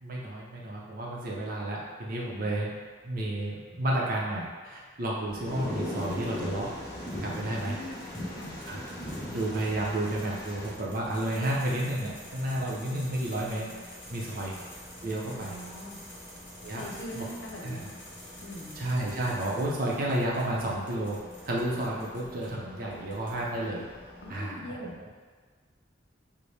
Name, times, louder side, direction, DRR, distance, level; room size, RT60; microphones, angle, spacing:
voice 1, 0.0-2.8 3.0-6.7 7.2-7.8 8.7-8.8 9.3-13.7 14.1-14.6 15.0-15.6 16.6-17.3 17.6-17.9 18.7-21.2 21.4-23.8 24.3-25.1, right 1 dB, 50° right, -4 dB, 0.7 m, -31 dB
sound 1, 5.3-24.4, equal, 5° right, 1.1 m, -49 dB
Thunder, 5.5-10.7, left 1 dB, 20° left, 0.7 m, -38 dB
sound 2, 6.0-6.4 7.1-22.5 22.9-23.7, left 1 dB, 45° left, 1.0 m, -50 dB
voice 2, 7.5-8.0 8.3-8.5 14.2-14.4 15.3-16.0 16.7-17.9 18.4-18.8 24.2-24.9, left 1 dB, 75° left, -1 dB, 0.6 m, -42 dB
4.1 x 2.1 x 3.3 m, 1.5 s
head